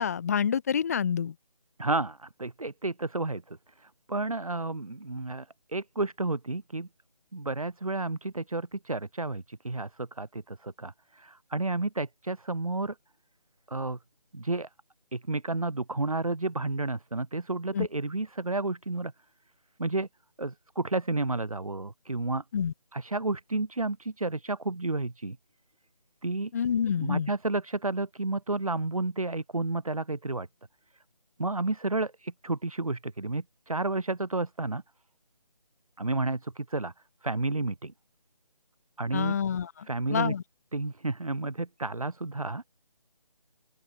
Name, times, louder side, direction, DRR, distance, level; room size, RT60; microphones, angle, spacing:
voice 1, 0.0-1.3 17.7-17.9 22.5-22.7 26.5-27.3 39.1-40.4, left 7 dB, 25° left, 1.9 m, -28 dB
voice 2, 1.8-3.6 4.1-5.4 5.7-6.9 7.3-10.9 11.2-12.9 13.7-14.0 14.3-14.7 15.1-19.1 19.8-20.1 20.4-22.4 22.9-25.4 26.2-26.5 27.0-30.5 31.4-34.8 36.0-36.9 37.2-37.9 39.0-39.3 39.9-40.3 40.7-42.6, right 2 dB, 60° right, 5.0 m, -31 dB
open air
figure-of-eight pair, 155°, 20 cm